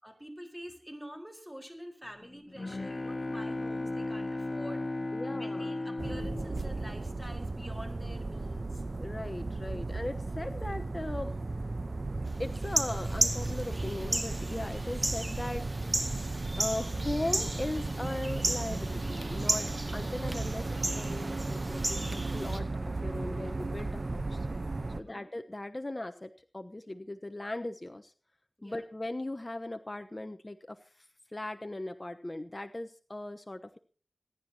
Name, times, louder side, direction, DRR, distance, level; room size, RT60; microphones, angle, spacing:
voice 1, 0.0-4.8 5.4-8.8 24.9-25.3 28.6-28.8, equal, 5° right, 5 dB, 4.6 m, -47 dB
Bowed string instrument, 2.2-7.7, left 2 dB, 50° left, 1.7 m, -36 dB
voice 2, 5.1-5.7 9.0-11.3 12.4-15.7 16.6-24.5 25.0-28.1 28.6-30.8 31.3-33.8, left 1 dB, 35° left, 8 dB, 1.0 m, -38 dB
sound 1, 6.0-25.0, right 2 dB, 55° right, 0.9 m, -35 dB
sound 2, 12.6-22.6, right 1 dB, 35° right, 2.0 m, -35 dB
27.0 x 9.9 x 2.9 m, 0.40 s
cardioid pair, 40°, 0 cm